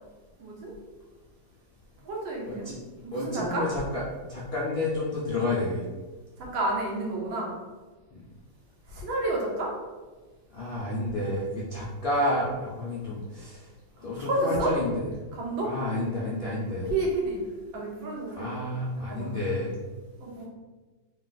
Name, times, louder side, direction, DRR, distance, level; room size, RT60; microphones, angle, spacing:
voice 1, 0.4-0.7 2.0-3.6 6.4-7.6 8.9-9.7 14.2-14.7 15.3-15.7 16.9-17.4 17.7-18.5 19.1-19.4 20.2-20.4, right 2 dB, 85° right, -2 dB, 1.7 m, -30 dB
voice 2, 3.1-4.0 4.3-5.8 10.5-13.6 14.0-15.1 15.6-16.9 18.3-19.8, left 1 dB, 80° left, -7 dB, 0.5 m, -30 dB
3.9 x 2.4 x 3.9 m, 1.3 s
omnidirectional pair, 2.1 m